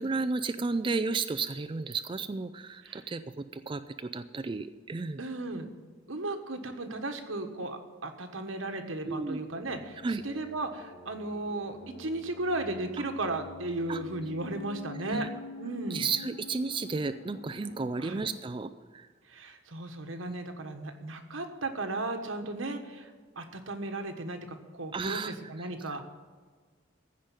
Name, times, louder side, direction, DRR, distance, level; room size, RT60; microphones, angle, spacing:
voice 1, 0.0-5.2 9.1-9.4 10.0-10.2 13.9-14.0 15.0-15.3 15.9-19.1 20.3-20.4 24.9-25.7, right 4 dB, 25° right, 10 dB, 0.4 m, -33 dB
voice 2, 5.2-5.7 6.1-15.3 15.6-16.1 18.0-18.2 19.3-23.1 23.3-26.0, right 2 dB, 90° right, 5 dB, 1.4 m, -35 dB
sound 1, 9.1-18.4, left 3 dB, 50° left, 2.4 m, -47 dB
15.0 x 5.2 x 9.0 m, 1.5 s
head